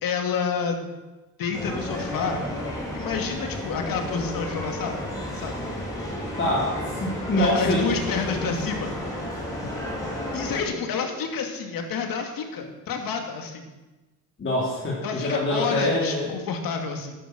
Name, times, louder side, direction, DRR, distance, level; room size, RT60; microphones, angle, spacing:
voice 1, 0.0-0.9 1.4-2.4 2.9-5.1 5.3-5.6 7.4-9.0 10.3-13.7 15.0-17.1, left 5 dB, 75° left, 4 dB, 2.5 m, -29 dB
sound 1, 1.5-10.6, left 1 dB, 10° left, 5.3 m, -32 dB
voice 2, 6.4-7.9 9.6-9.7 14.4-16.3, left 1 dB, 35° left, -6 dB, 3.4 m, -25 dB
11.5 x 11.0 x 7.8 m, 1.1 s
cardioid pair, 140°, 34 cm